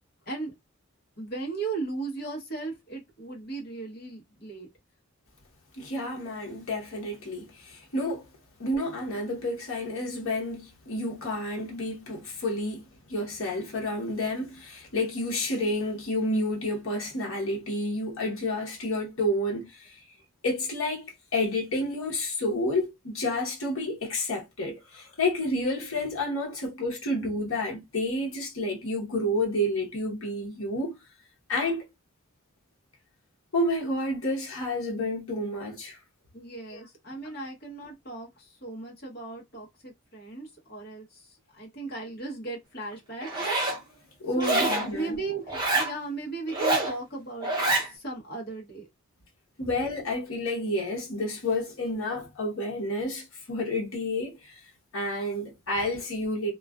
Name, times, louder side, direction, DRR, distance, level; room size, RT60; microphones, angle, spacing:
voice 1, 1.2-4.7 36.3-43.4 44.3-48.9 49.6-49.7, right 3 dB, 45° left, 0.9 m, -37 dB
voice 2, 5.7-8.2 8.6-20.0 20.4-30.9 31.5-31.9 33.5-36.0 36.7-36.8 44.2-45.2 49.6-54.6 54.9-56.5, left 1 dB, 70° left, 0.9 m, -30 dB
Zipper (clothing), 43.2-43.8 44.4-44.9 45.5-45.9 46.5-46.9 47.4-47.9, right 2 dB, 20° right, 0.7 m, -26 dB
2.3 x 2.3 x 2.3 m
head